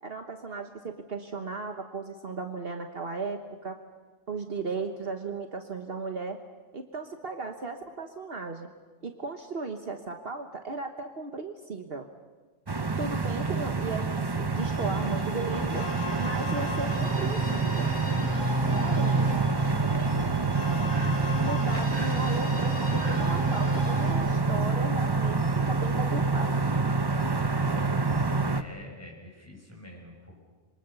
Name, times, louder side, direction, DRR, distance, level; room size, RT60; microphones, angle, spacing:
voice 1, 0.0-3.8 4.3-6.4 6.7-8.7 9.0-12.1 13.0-14.1 14.4-15.8 16.2-17.9 18.7-19.3 21.4-26.6, right 3 dB, 55° right, 5 dB, 1.5 m, -36 dB
sound 1, 12.7-28.6, right 3 dB, 20° right, 0.9 m, -27 dB
sound 2, 14.5-24.1, equal, 85° left, 7.8 m, -38 dB
voice 2, 28.1-30.4, left 1 dB, 10° left, 0 dB, 6.3 m, -47 dB
27.5 x 23.5 x 6.9 m, 1.4 s
omnidirectional pair, 1.2 m